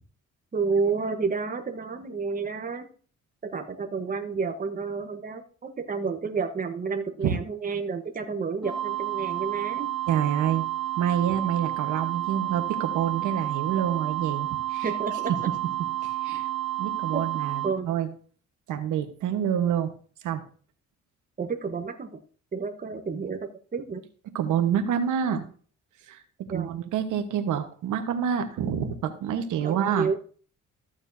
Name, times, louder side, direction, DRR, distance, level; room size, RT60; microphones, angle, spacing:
voice 1, 0.5-2.9 3.4-9.9 14.8-15.5 17.1-17.2 17.6-17.9 21.4-22.1 22.5-24.0 26.5-26.7 29.6-30.2, right 5 dB, 30° right, 5 dB, 1.1 m, -30 dB
sound 1, 8.6-17.7, right 14 dB, ahead, 3.6 m, -30 dB
voice 2, 10.1-10.6 11.0-14.9 16.0-16.5 16.8-18.1 18.7-19.9 20.2-20.4 24.3-25.4 26.1-26.2 26.5-30.1, right 9 dB, 80° right, 7 dB, 1.2 m, -27 dB
14.0 x 7.2 x 2.7 m, 0.43 s
cardioid pair, 90°, 30 cm